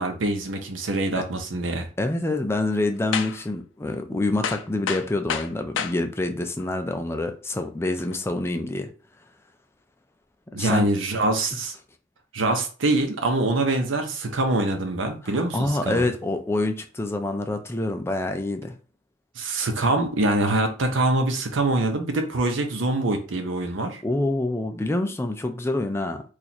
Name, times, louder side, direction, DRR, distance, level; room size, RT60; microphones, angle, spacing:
voice 1, 0.0-1.9 10.5-11.8 12.3-16.0 19.4-24.0, right 2 dB, 85° right, 0.7 m, -24 dB
voice 2, 2.0-8.9 10.6-10.9 15.2-18.7 24.0-26.2, left 2 dB, 15° left, 0.4 m, -26 dB
sound 1, 3.1-3.5 3.9-4.0 4.4-6.0 6.6-6.7 8.0-8.2, left 7 dB, 80° left, 0.4 m, -29 dB
2.9 x 2.4 x 4.1 m
head